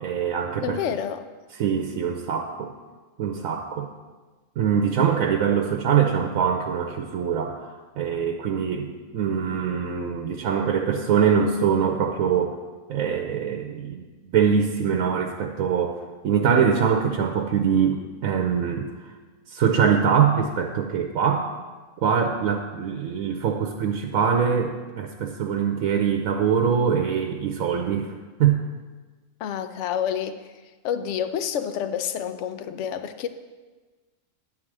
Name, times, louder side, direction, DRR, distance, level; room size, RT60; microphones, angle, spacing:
voice 1, 0.0-0.8 1.6-2.7 3.2-3.9 4.6-12.6 12.9-14.0 14.3-18.9 19.5-21.5 22.0-28.1 28.4-28.6, right 7 dB, 85° right, 5 dB, 1.1 m, -23 dB
voice 2, 0.6-1.3 29.4-30.5 30.8-33.3, left 8 dB, 70° left, 10 dB, 0.9 m, -28 dB
10.5 x 5.0 x 7.3 m, 1.3 s
omnidirectional pair, 1.4 m